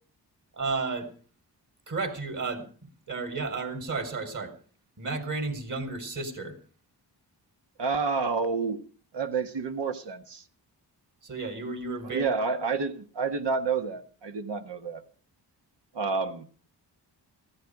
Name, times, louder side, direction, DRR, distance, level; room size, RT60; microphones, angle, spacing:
voice 1, 0.5-1.1 1.9-4.5 5.0-6.6 11.2-12.3, right 3 dB, 45° right, 4.0 m, -33 dB
voice 2, 7.8-8.8 9.1-10.4 12.1-15.0 15.9-16.4, right 4 dB, 75° right, 1.7 m, -29 dB
15.0 x 14.0 x 4.8 m
cardioid pair, 75°, 42 cm